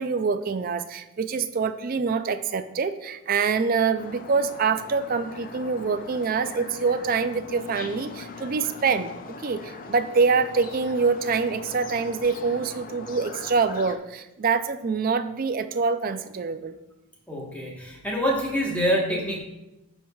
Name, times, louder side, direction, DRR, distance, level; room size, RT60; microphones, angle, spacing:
voice 1, 0.0-9.1 9.4-16.7, right 5 dB, 40° right, 10 dB, 0.3 m, -25 dB
sound 1, 4.0-14.0, left 4 dB, 40° left, 0.4 m, -41 dB
voice 2, 17.3-19.4, equal, 5° left, -3 dB, 1.3 m, -26 dB
12.5 x 4.5 x 2.4 m, 0.96 s
head